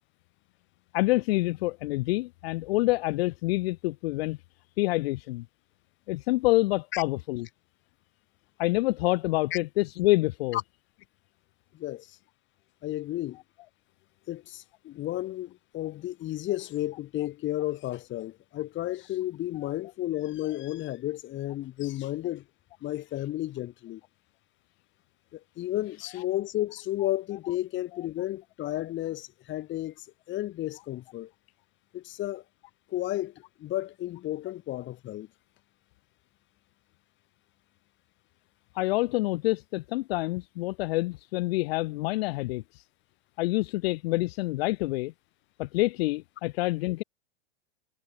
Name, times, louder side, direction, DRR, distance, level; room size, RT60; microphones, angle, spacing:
voice 1, 0.9-4.4 4.8-5.4 6.1-7.5 8.6-10.6 38.7-42.8 43.4-45.1 45.6-47.0, left 20 dB, 60° left, 0.9 m, -27 dB
voice 2, 11.7-12.2 12.8-13.4 14.3-22.4 22.8-24.0 25.3-31.3 31.9-32.4 32.9-33.3 33.6-35.3, left 15 dB, 35° left, 1.7 m, -32 dB
hypercardioid pair, 115°, 34 cm